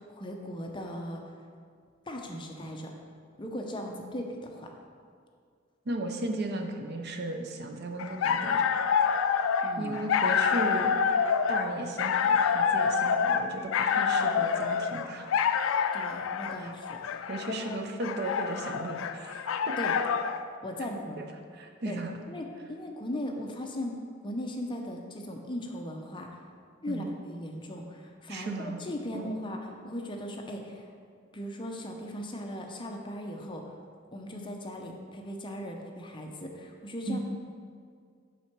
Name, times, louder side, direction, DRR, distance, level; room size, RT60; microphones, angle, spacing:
voice 1, 0.0-1.3 2.1-2.9 3.4-4.7 9.6-10.0 15.9-17.0 17.6-17.8 19.8-20.0 20.6-21.2 21.8-22.0 22.3-24.0 24.2-26.3 26.8-30.9 31.3-33.6 34.1-37.2, left 1 dB, 25° left, 2 dB, 0.6 m, -38 dB
voice 2, 5.9-8.7 9.8-11.0 11.5-15.3 16.5-16.7 17.3-19.7 21.2-21.3 21.5-22.1 26.9-27.1 28.3-28.8 29.1-29.4 37.1-37.2, right 2 dB, 55° right, 4 dB, 0.6 m, -36 dB
sound 1, 8.0-20.4, left 6 dB, 80° left, 0.3 m, -27 dB
5.8 x 4.3 x 5.9 m, 2.1 s
head